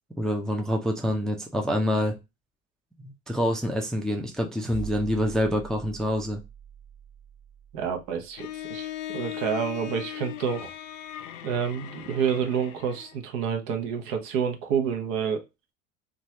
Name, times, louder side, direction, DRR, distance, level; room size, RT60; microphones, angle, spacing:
voice 1, 0.2-2.1 3.0-6.4, equal, ahead, 0.4 m, -26 dB
sound 1, 4.6-9.2, right 7 dB, 30° right, 1.1 m, -44 dB
voice 2, 7.7-10.7 11.4-15.4, right 7 dB, 60° right, 0.9 m, -28 dB
Bowed string instrument, 8.4-13.2, left 12 dB, 70° left, 0.5 m, -38 dB
3.0 x 2.4 x 2.8 m
hypercardioid pair, 70°, 40 cm